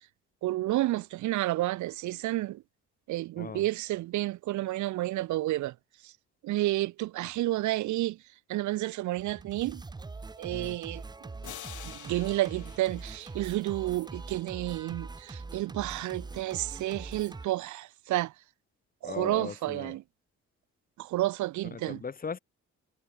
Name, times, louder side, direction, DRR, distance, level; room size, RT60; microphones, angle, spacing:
voice 1, 0.4-2.6 3.1-5.7 6.0-6.1 6.4-8.2 8.5-9.8 10.4-11.3 11.8-18.3 19.0-20.0 21.0-22.0, right 16 dB, 75° right, 0.6 m, -31 dB
Singing, 9.2-17.5, right 3 dB, 15° right, 0.6 m, -43 dB
sound 1, 11.4-14.1, left 13 dB, 80° left, 5.1 m, -48 dB
voice 2, 19.0-19.9 21.7-22.4, left 5 dB, 30° left, 1.1 m, -38 dB
cardioid pair, 90°, 30 cm